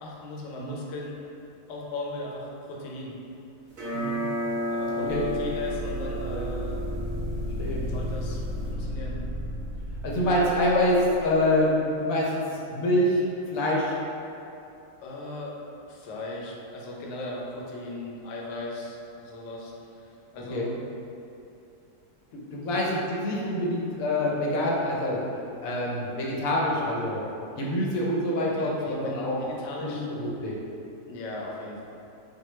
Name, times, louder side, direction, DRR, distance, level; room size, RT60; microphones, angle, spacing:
voice 1, 0.0-1.2 1.7-3.2 4.7-6.9 7.9-9.2 15.0-15.5 15.9-20.7 22.6-22.9 28.5-30.1 31.1-31.8, left 1 dB, 85° left, -3 dB, 1.2 m, -38 dB
sound 1, 3.7-8.7, equal, 50° right, 0.6 m, -33 dB
voice 2, 3.9-4.3 4.9-5.2 6.3-6.5 7.6-7.8 10.0-13.2 13.5-14.0 20.5-20.7 22.5-27.2 27.6-29.5 29.8-30.5, left 1 dB, 65° left, -3 dB, 0.9 m, -26 dB
sound 2, 5.1-11.2, equal, 65° right, 1.0 m, -33 dB
4.2 x 2.2 x 3.1 m, 2.7 s
omnidirectional pair, 1.8 m